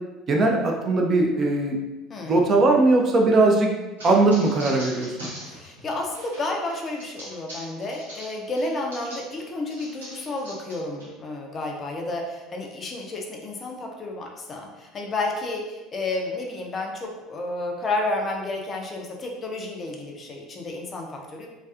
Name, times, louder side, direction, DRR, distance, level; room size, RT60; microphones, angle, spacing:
voice 1, 0.3-1.8 2.3-3.7 4.0-5.3, right 2 dB, 35° right, 1 dB, 0.4 m, -19 dB
voice 2, 2.1-2.4 5.4-21.5, left 2 dB, 30° left, 1 dB, 0.4 m, -31 dB
sound 1, 4.0-9.3 9.7-11.1, equal, 75° right, 0.7 m, -41 dB
2.3 x 2.3 x 2.3 m, 1.1 s
figure-of-eight pair, 65°, 0 cm